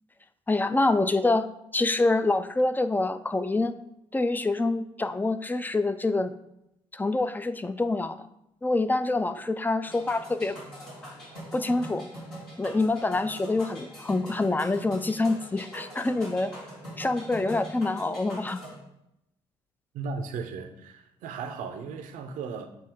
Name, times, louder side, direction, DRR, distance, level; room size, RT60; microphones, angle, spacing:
voice 1, 0.5-1.5 1.7-3.8 4.1-6.3 6.9-8.3 8.6-10.6 11.5-12.1 12.6-16.5 17.0-18.6, left 2 dB, 10° left, 0.4 m, -26 dB
sound 1, 9.8-18.8, equal, 75° left, 2.1 m, -43 dB
voice 2, 19.9-22.7, right 5 dB, 60° right, 0.7 m, -36 dB
7.7 x 2.7 x 5.0 m
figure-of-eight pair, 40°, 15 cm